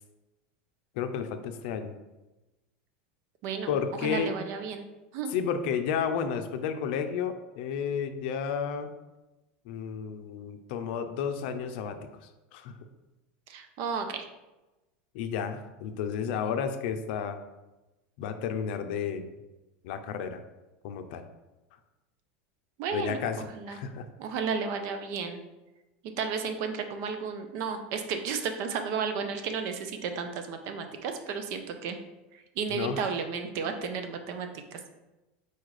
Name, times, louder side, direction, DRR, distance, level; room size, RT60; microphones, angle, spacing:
voice 1, 1.0-1.9 3.7-4.4 5.3-8.9 9.7-12.0 12.5-12.7 15.1-17.4 18.2-19.2 19.8-20.4 20.8-21.2 22.9-24.1 32.7-33.1, left 7 dB, 70° left, 8 dB, 0.5 m, -32 dB
voice 2, 4.0-4.9 5.1-5.3 13.5-14.2 22.8-23.2 23.5-23.8 24.2-25.4 26.2-32.0 32.6-34.8, right 6 dB, 55° right, 7 dB, 0.6 m, -33 dB
4.2 x 2.4 x 4.8 m, 1.0 s
supercardioid pair, 120°, 6 cm